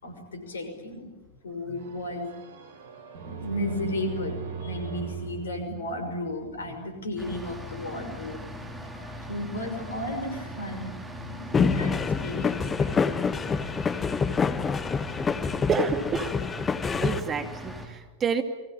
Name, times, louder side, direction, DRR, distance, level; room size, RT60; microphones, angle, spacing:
voice 1, 0.0-1.1 1.4-2.3 3.2-11.0 11.3-13.0, left 1 dB, 65° left, 8 dB, 6.0 m, -34 dB
sound 1, 1.8-6.5, right 6 dB, 60° right, 4.2 m, -39 dB
sound 2, 7.2-17.9, equal, 5° right, 5.0 m, -40 dB
sound 3, 11.5-17.2, left 5 dB, 20° left, 1.3 m, -26 dB
voice 2, 15.7-16.3 17.0-18.4, right 6 dB, 25° right, 8 dB, 2.5 m, -28 dB
30.0 x 22.5 x 8.9 m, 1.1 s
figure-of-eight pair, 90°, 0 cm